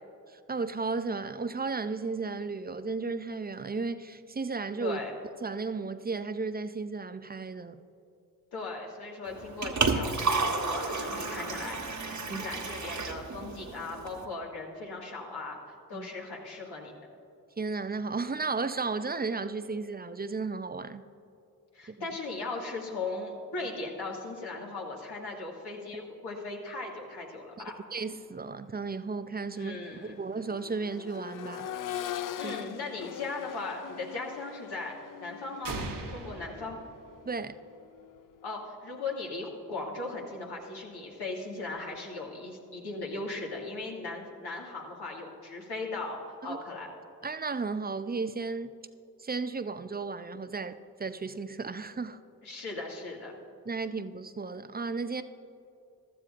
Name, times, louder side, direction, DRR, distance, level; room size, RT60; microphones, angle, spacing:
voice 1, 0.3-5.0 5.4-7.8 12.3-12.4 15.9-16.1 17.6-21.0 21.9-22.1 27.6-27.7 27.9-31.7 32.4-32.6 37.3-37.6 46.4-46.6 47.2-48.7 49.2-50.7 51.0-52.2 53.7-55.2, right 4 dB, 25° right, 0.5 m, -34 dB
voice 2, 4.8-5.1 8.5-15.6 15.9-16.9 21.7-27.7 29.6-30.2 32.4-35.8 36.1-36.8 38.4-46.2 46.4-46.9 52.4-53.4, left 3 dB, 70° left, 2.1 m, -38 dB
Liquid, 9.2-14.3, right 4 dB, 45° right, 1.3 m, -32 dB
Accelerating revving vroom, 28.3-28.4 28.9-38.8 40.5-40.6, left 10 dB, 55° left, 0.5 m, -42 dB
sound 1, 35.6-37.6, right 3 dB, 85° right, 1.3 m, -39 dB
15.0 x 12.5 x 2.5 m
supercardioid pair, 40°, 40 cm